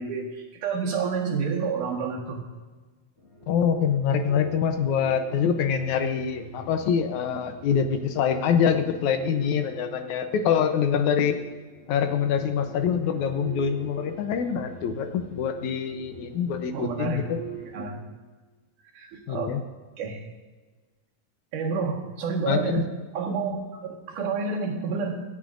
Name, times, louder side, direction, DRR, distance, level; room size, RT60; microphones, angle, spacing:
voice 1, 0.0-2.4 16.7-17.3 17.7-18.0 18.9-19.5 20.0-20.2 21.5-22.9 23.1-25.2, right 5 dB, 75° right, 0 dB, 3.1 m, -29 dB
sound 1, 3.2-17.9, right 5 dB, 50° left, 0.8 m, -44 dB
voice 2, 3.5-11.4 11.9-17.4 19.3-19.6 22.5-22.8, left 7 dB, 75° left, 7 dB, 2.0 m, -25 dB
25.5 x 8.7 x 2.6 m, 1.3 s
omnidirectional pair, 3.7 m